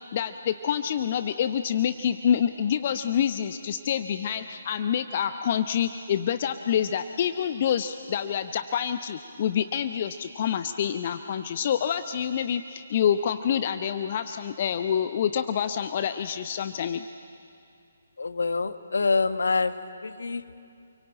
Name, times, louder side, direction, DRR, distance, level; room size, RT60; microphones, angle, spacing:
voice 1, 0.1-17.0, left 8 dB, 40° left, 10 dB, 0.8 m, -27 dB
voice 2, 18.2-19.7 20.0-20.4, left 4 dB, 65° left, 10 dB, 1.4 m, -26 dB
28.5 x 23.0 x 8.9 m, 2.5 s
figure-of-eight pair, 140°, 0 cm